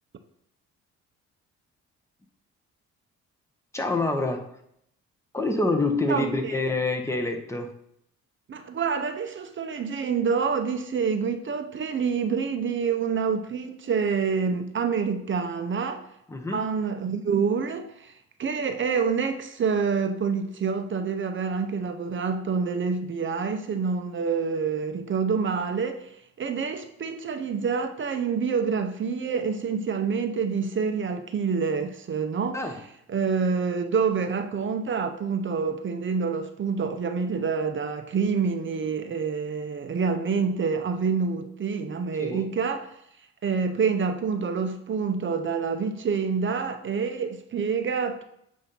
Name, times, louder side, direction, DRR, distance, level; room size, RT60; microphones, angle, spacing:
voice 1, 3.7-4.5 5.3-7.7 16.3-16.7 32.5-32.8 42.2-42.5, left 2 dB, 10° left, 0.9 m, -26 dB
voice 2, 6.1-6.5 8.5-16.0 16.5-18.1 18.4-32.6 33.1-42.9 43.4-48.2, right 5 dB, 40° right, 0.7 m, -27 dB
8.2 x 2.8 x 5.3 m
cardioid pair, 90°, 30 cm